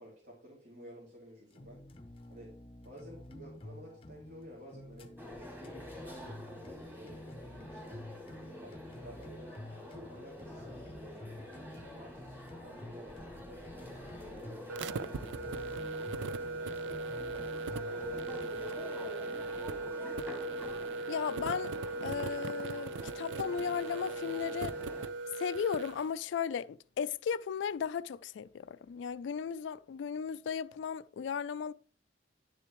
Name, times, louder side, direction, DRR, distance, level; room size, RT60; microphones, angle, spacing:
voice 1, 0.0-1.8 2.3-2.5 2.8-5.2 5.6-8.1 8.3-9.5 9.9-16.3 16.8-20.1, equal, 55° right, 2.7 m, -53 dB
sound 1, 1.5-18.7, left 1 dB, 30° left, 0.6 m, -50 dB
sound 2, 5.2-25.1, left 1 dB, 10° right, 2.1 m, -47 dB
sound 3, 14.7-26.0, right 3 dB, 80° right, 0.4 m, -38 dB
voice 2, 21.1-21.7 22.0-24.8 25.4-31.7, left 7 dB, 85° left, 0.3 m, -36 dB
10.0 x 6.8 x 3.0 m
head